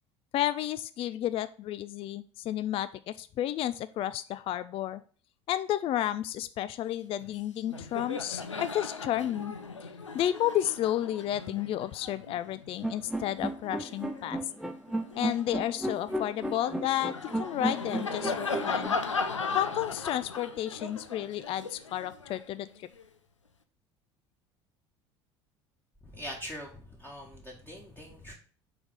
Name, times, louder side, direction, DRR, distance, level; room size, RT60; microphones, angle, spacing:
voice 1, 0.3-5.0 5.5-8.4 8.7-9.5 10.1-14.4 15.1-19.0 19.5-22.9, left 12 dB, 40° left, 15 dB, 0.4 m, -32 dB
Laughter, 7.2-7.4 7.6-14.4 14.9-23.1, left 4 dB, 85° left, 0.6 m, -38 dB
sound 1, 12.8-18.9, right 1 dB, 5° right, 0.9 m, -33 dB
voice 2, 26.1-28.3, equal, 15° left, -2 dB, 1.8 m, -42 dB
5.8 x 4.0 x 5.2 m, 0.42 s
figure-of-eight pair, 65°, 15 cm